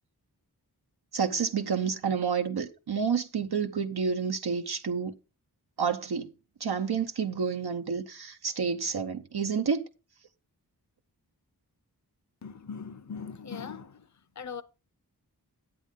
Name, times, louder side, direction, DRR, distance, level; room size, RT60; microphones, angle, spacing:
voice 1, 1.1-5.1 5.8-6.3 6.6-9.9, right 6 dB, 75° right, 0.8 m, -29 dB
voice 2, 12.4-14.1 14.4-14.6, left 6 dB, 45° left, 0.8 m, -40 dB
10.0 x 8.2 x 3.6 m
wide cardioid pair, 50°, 39 cm